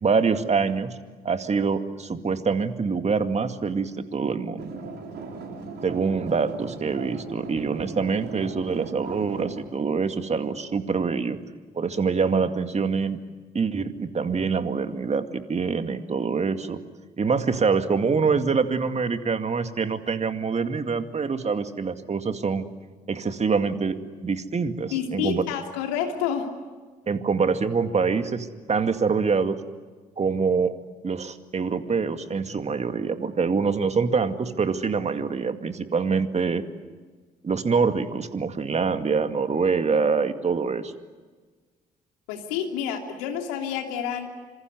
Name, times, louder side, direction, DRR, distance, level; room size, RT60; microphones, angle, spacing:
voice 1, 0.0-1.0 1.2-4.8 5.8-11.4 11.7-13.2 13.5-16.8 17.2-22.6 23.1-24.0 24.2-25.4 27.1-29.6 30.2-30.7 31.0-36.6 37.4-40.9, right 5 dB, 35° right, 8 dB, 2.3 m, -25 dB
sound 1, 4.6-9.6, right 4 dB, 55° right, 5.9 m, -38 dB
voice 2, 24.9-26.5 42.3-44.3, left 8 dB, 70° left, 3 dB, 3.1 m, -29 dB
27.0 x 26.5 x 8.1 m, 1.4 s
figure-of-eight pair, 45°, 21 cm